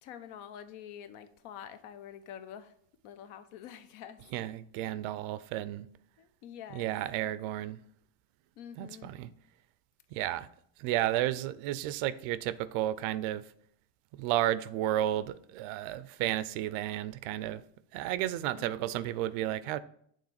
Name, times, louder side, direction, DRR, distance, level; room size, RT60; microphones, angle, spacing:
voice 1, 0.0-2.8 3.0-4.3 6.2-6.9 8.6-9.1 18.5-19.1, left 9 dB, 80° left, 0.8 m, -47 dB
voice 2, 4.3-5.9 6.7-7.8 8.8-9.3 10.1-10.5 10.8-13.4 14.2-17.6 17.9-19.8, right 13 dB, 90° right, 0.6 m, -32 dB
6.5 x 3.4 x 5.8 m
cardioid pair, 115°, 49 cm